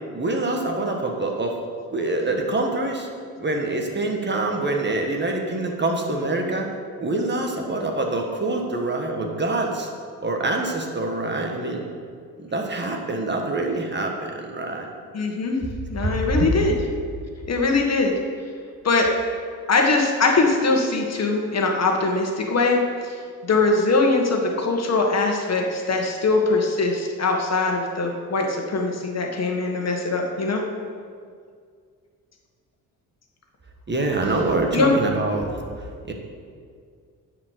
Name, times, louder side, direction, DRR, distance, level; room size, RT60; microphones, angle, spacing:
voice 1, 0.1-1.6 1.9-3.1 3.4-6.7 7.0-9.9 10.2-11.8 12.4-14.9 16.0-16.5 33.9-35.6 36.0-36.1, right 2 dB, 30° right, 2 dB, 1.5 m, -25 dB
voice 2, 15.1-15.6 15.9-16.7 17.5-18.1 18.8-19.1 19.7-23.2 23.4-30.6 34.7-34.9, left 3 dB, 45° left, 1 dB, 1.6 m, -22 dB
10.0 x 4.9 x 8.1 m, 2.1 s
cardioid pair, 85°, 35 cm